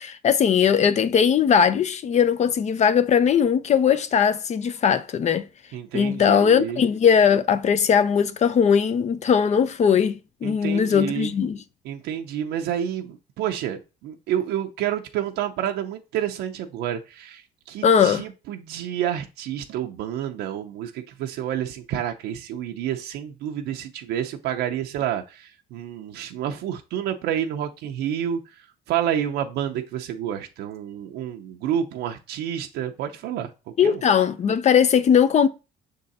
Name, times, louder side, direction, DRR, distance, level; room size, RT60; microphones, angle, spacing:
voice 1, 0.0-5.5 5.9-11.6 17.8-18.3 33.8-35.5, left 7 dB, 45° left, 0.7 m, -19 dB
voice 2, 5.7-6.8 10.4-11.3 11.8-28.4 28.9-33.5 33.8-34.0, right 10 dB, 85° right, 0.7 m, -29 dB
6.7 x 3.8 x 4.1 m
cardioid pair, 110°, 17 cm